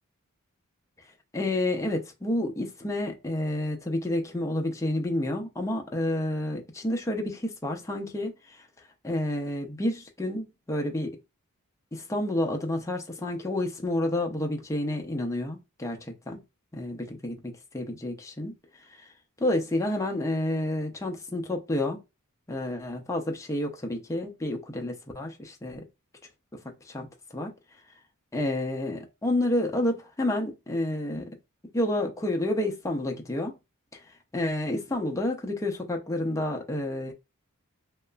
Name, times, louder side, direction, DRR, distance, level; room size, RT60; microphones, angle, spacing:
voice 1, 1.3-8.3 9.0-11.2 11.9-16.4 16.7-18.5 19.4-22.0 22.5-25.8 26.6-27.5 28.3-31.3 31.7-33.6 33.9-34.0 34.3-37.1, left 1 dB, 15° left, 0.5 m, -29 dB
2.8 x 2.4 x 2.2 m
head